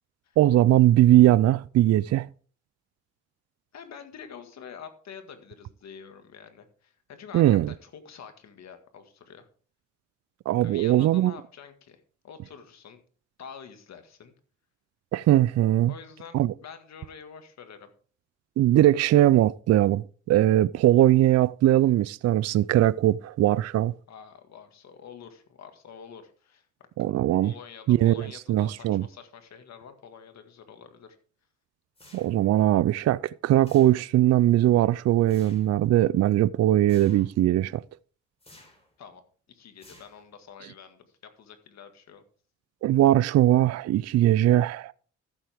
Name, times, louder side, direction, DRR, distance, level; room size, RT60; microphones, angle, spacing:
voice 1, 0.4-2.3 7.3-7.7 10.5-11.3 15.1-15.9 16.3-16.5 18.6-23.9 27.0-27.5 27.9-29.0 32.1-37.8 42.8-44.9, right 14 dB, 55° right, 0.4 m, -20 dB
voice 2, 3.7-9.5 10.6-13.0 13.4-14.3 15.9-17.9 24.1-26.7 27.4-31.2 39.0-39.2 39.5-42.2, left 7 dB, 60° left, 1.8 m, -47 dB
sound 1, 31.9-32.6 33.6-34.3 35.3-35.8 36.9-37.4 38.4-38.9 39.8-40.5, left 1 dB, 20° left, 4.0 m, -54 dB
14.0 x 7.7 x 3.5 m
cardioid pair, 90°, 30 cm